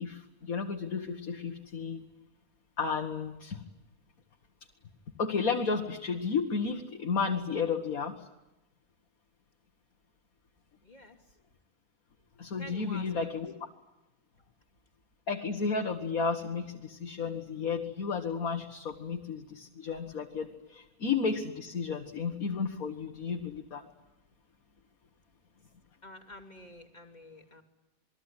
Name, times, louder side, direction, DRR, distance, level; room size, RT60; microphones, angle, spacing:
voice 1, 0.0-2.0 2.8-3.6 5.2-8.1 12.4-13.5 15.3-23.8, left 5 dB, 70° left, 3 dB, 2.1 m, -32 dB
voice 2, 10.8-11.2 12.6-13.3 26.0-27.6, left 1 dB, 30° left, 2 dB, 2.9 m, -49 dB
28.0 x 21.5 x 9.9 m, 0.98 s
omnidirectional pair, 1.6 m